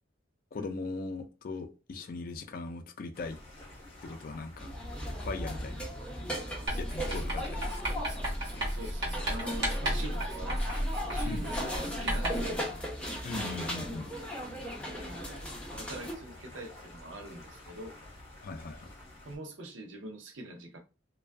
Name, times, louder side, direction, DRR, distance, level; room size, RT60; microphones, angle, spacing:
voice 1, 0.5-3.4 4.0-4.7 5.2-5.9 6.8-7.9 11.2-11.5 13.2-14.1 18.4-18.9, left 3 dB, 50° left, 0.4 m, -39 dB
sound 1, 3.1-19.4, left 1 dB, 30° left, 0.9 m, -51 dB
sound 2, 4.6-16.1, equal, 5° left, 0.7 m, -38 dB
Writing, 6.7-12.6, equal, 60° right, 1.1 m, -33 dB
voice 2, 8.7-10.6 11.1-12.7 14.9-18.0 19.3-20.8, right 1 dB, 85° right, 0.6 m, -44 dB
2.5 x 2.3 x 2.2 m
head